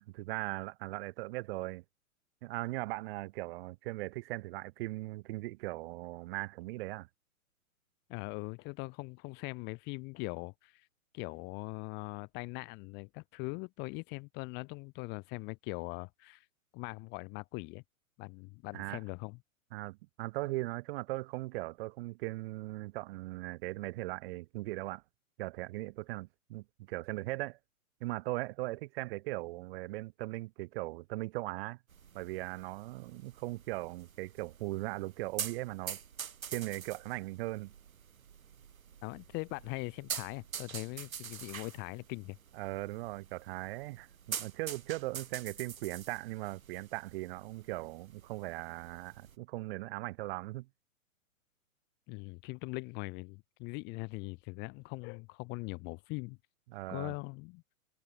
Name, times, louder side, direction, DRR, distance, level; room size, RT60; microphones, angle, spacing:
voice 1, 0.0-1.8 2.4-7.1 18.7-19.0 19.7-25.0 25.4-27.6 28.0-31.8 32.1-36.0 36.5-37.7 42.5-50.7 56.7-57.1, right 20 dB, 40° right, 2.4 m, -39 dB
voice 2, 8.1-10.9 11.1-16.5 16.7-17.8 18.2-19.4 39.0-42.4 52.1-56.4 56.9-57.6, left 29 dB, 25° left, 0.8 m, -41 dB
sound 1, 31.9-49.4, right 8 dB, 70° right, 5.0 m, -46 dB
hypercardioid pair, 125°, 43 cm